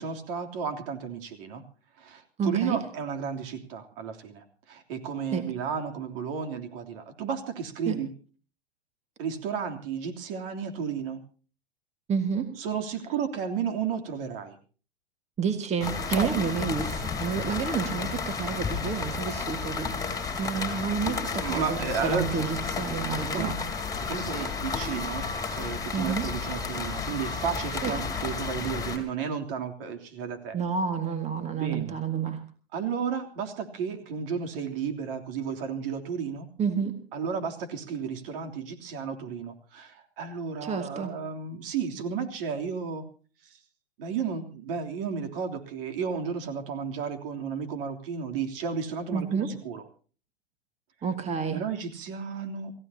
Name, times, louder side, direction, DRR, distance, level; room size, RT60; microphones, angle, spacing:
voice 1, 0.0-1.6 2.0-8.1 9.2-11.2 12.6-14.6 16.1-16.3 21.4-22.2 23.3-23.5 24.0-25.2 25.5-30.6 31.5-32.0 32.7-36.5 37.1-43.0 43.4-43.6 44.0-49.8 51.5-52.7, right 6 dB, 60° right, 5 dB, 3.3 m, -33 dB
voice 2, 2.4-2.8 5.3-5.4 7.9-8.0 12.1-12.5 15.4-20.1 20.4-23.6 25.9-26.3 27.8-27.9 30.5-32.4 36.6-37.0 40.6-41.1 49.1-49.5 51.0-51.6, right 6 dB, 20° right, 8 dB, 1.9 m, -29 dB
sound 1, 15.8-29.0, left 5 dB, 10° left, 4.0 m, -32 dB
28.0 x 15.5 x 2.9 m, 0.39 s
hypercardioid pair, 120°, 32 cm